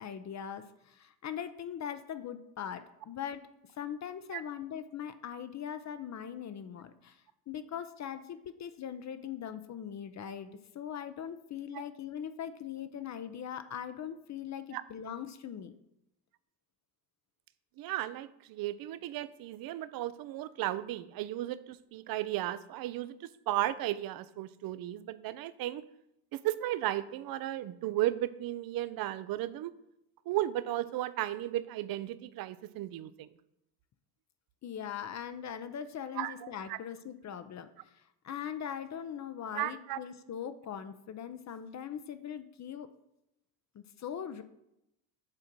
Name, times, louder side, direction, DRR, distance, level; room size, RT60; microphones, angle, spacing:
voice 1, 0.0-3.4 3.8-10.5 10.7-15.8 34.6-42.9 43.7-44.4, left 8 dB, 35° left, 11 dB, 0.7 m, -41 dB
voice 2, 17.8-23.1 23.5-25.8 26.3-29.7 30.3-33.3 36.2-36.8 39.5-40.0, right 14 dB, 50° right, 15 dB, 0.6 m, -35 dB
7.6 x 3.7 x 6.1 m, 0.83 s
supercardioid pair, 85°, 46 cm